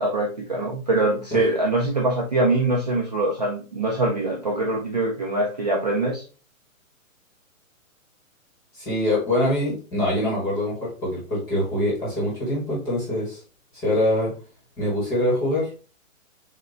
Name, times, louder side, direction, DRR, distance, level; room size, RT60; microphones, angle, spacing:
voice 1, 0.0-6.2, right 2 dB, 30° right, -2 dB, 0.5 m, -23 dB
voice 2, 8.8-13.4 13.8-14.3 14.8-15.7, left 1 dB, 10° left, -6 dB, 1.0 m, -24 dB
6.6 x 2.2 x 3.2 m, 0.36 s
hypercardioid pair, 170°, 41 cm